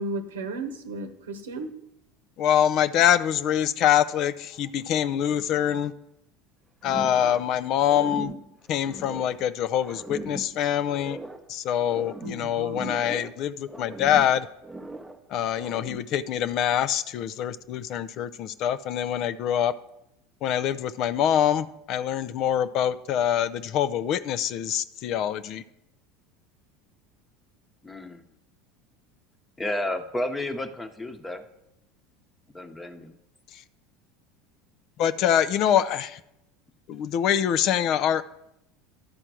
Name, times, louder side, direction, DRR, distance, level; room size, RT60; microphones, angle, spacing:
voice 1, 0.0-1.8 12.2-12.9, right 2 dB, 85° right, 6 dB, 0.8 m, -34 dB
voice 2, 2.4-5.9 6.8-8.3 8.7-11.2 11.5-14.5 15.3-19.7 20.4-25.6 33.5-33.6 35.0-36.2 36.9-38.2, left 10 dB, 55° left, 14 dB, 0.4 m, -25 dB
sound 1, 6.8-7.6 7.8-9.5 9.8-11.5 11.8-13.4 13.7-15.2 15.6-16.2, right 1 dB, 5° right, 0.8 m, -39 dB
voice 3, 27.8-28.2 29.6-31.4 32.5-33.1, left 1 dB, 15° left, 7 dB, 1.0 m, -32 dB
11.0 x 4.4 x 6.1 m, 0.83 s
hypercardioid pair, 85°, 0 cm